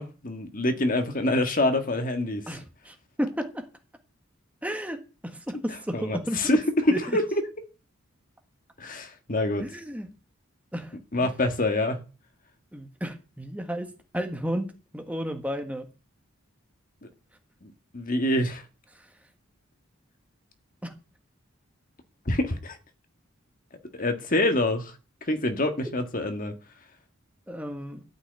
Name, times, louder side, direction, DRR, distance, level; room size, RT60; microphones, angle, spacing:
voice 1, 0.0-2.6 5.9-6.6 6.9-7.4 8.8-9.7 11.1-12.0 17.6-18.6 22.3-22.8 23.9-24.9 25.2-26.6, left 1 dB, 40° left, 1.7 m, -26 dB
voice 2, 2.5-3.7 4.6-6.5 6.9-7.2 9.6-10.1 10.7-11.3 12.7-15.9 18.9-19.1 20.8-20.9 27.5-28.0, equal, 5° right, 1.5 m, -33 dB
13.0 x 6.2 x 9.1 m
head